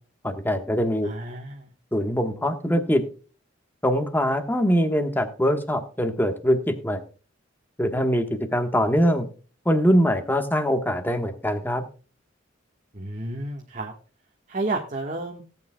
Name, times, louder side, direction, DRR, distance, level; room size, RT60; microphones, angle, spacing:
voice 1, 0.2-1.1 1.9-3.0 3.8-7.0 7.8-9.3 9.6-11.8, equal, 10° left, 7 dB, 1.3 m, -23 dB
voice 2, 1.0-1.7 12.9-13.9 14.5-15.4, right 2 dB, 40° right, 0 dB, 1.4 m, -31 dB
18.0 x 8.8 x 2.2 m, 0.37 s
head